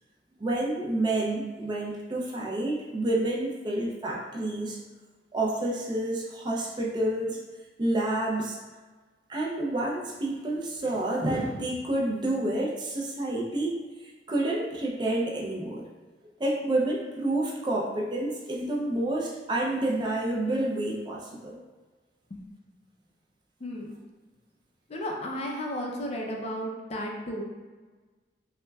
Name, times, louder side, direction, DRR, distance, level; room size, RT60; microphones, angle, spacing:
voice 1, 0.4-4.8 5.3-7.4 7.8-8.6 9.3-15.8 16.4-21.6, right 1 dB, 25° right, -2 dB, 0.4 m, -29 dB
voice 2, 23.6-24.0 24.9-27.4, equal, 35° left, 0 dB, 0.5 m, -33 dB
5.6 x 2.1 x 2.3 m, 1.3 s
head